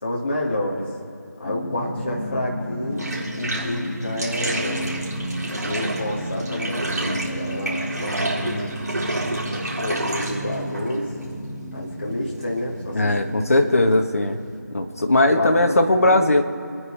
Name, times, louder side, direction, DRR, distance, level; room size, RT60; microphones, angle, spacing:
voice 1, 0.0-0.9 1.4-3.1 3.4-4.9 5.6-8.7 9.8-11.1 11.7-13.1 13.6-13.9 15.3-16.3, left 1 dB, 30° left, -3 dB, 2.3 m, -29 dB
sound 1, 1.4-14.1, equal, 15° left, 2.3 m, -33 dB
Bathtub (filling or washing), 2.9-14.6, right 2 dB, 60° right, 3.7 m, -30 dB
voice 2, 12.9-14.4 14.7-16.4, left 1 dB, 50° left, 4 dB, 1.4 m, -18 dB
27.5 x 9.8 x 3.4 m, 2.7 s
figure-of-eight pair, 175°, 10 cm